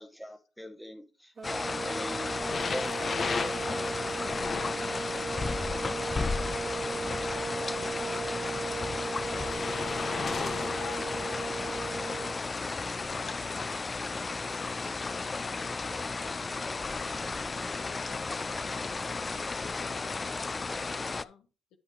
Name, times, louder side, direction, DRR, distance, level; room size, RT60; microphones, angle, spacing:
voice 1, 0.0-2.4 2.7-3.7 9.6-9.7, equal, ahead, 5 dB, 1.0 m, -42 dB
sound 1, 1.4-21.2, left 4 dB, 30° left, 0.3 m, -34 dB
sound 2, 1.4-12.4, right 4 dB, 40° right, 0.7 m, -37 dB
sound 3, 2.4-5.6 6.5-8.3 9.3-11.9 12.6-13.0 13.8-13.9, left 5 dB, 45° left, 0.8 m, -37 dB
voice 2, 4.6-5.3 6.9-8.0 9.2-12.4 17.7-21.8, left 7 dB, 85° left, 8 dB, 0.9 m, -52 dB
9.7 x 5.6 x 3.2 m, 0.34 s
cardioid pair, 90°, 0 cm